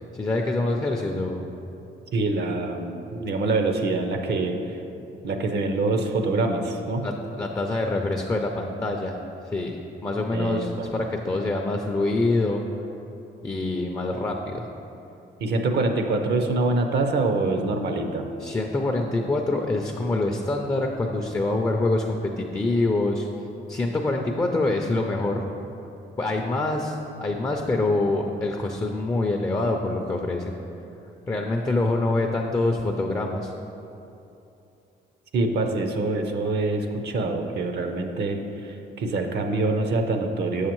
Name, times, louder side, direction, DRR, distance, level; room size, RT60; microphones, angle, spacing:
voice 1, 0.1-1.5 7.0-7.1 7.4-9.2 9.5-12.6 13.4-14.6 18.4-23.3 23.7-25.5 26.2-30.5 31.3-33.5, left 2 dB, 15° left, 2 dB, 0.4 m, -25 dB
voice 2, 2.1-4.8 5.2-7.1 10.3-10.9 15.4-18.3 35.3-40.7, right 3 dB, 60° right, 5 dB, 0.6 m, -25 dB
6.8 x 6.4 x 3.0 m, 2.8 s
cardioid pair, 90°, 20 cm